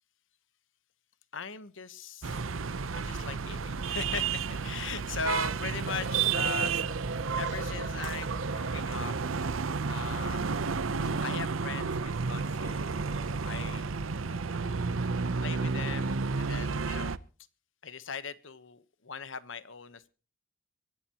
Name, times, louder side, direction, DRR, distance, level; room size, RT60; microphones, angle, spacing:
voice 1, 1.3-2.4 2.9-6.8 7.4-9.1 9.9-10.8 11.2-13.9 15.4-17.2 17.8-20.1, left 5 dB, 70° left, 15 dB, 1.1 m, -39 dB
sound 1, 2.2-17.2, right 5 dB, 90° right, 0.7 m, -32 dB
sound 2, 5.8-9.5, right 3 dB, 65° right, 1.3 m, -38 dB
25.0 x 12.5 x 3.0 m, 0.37 s
head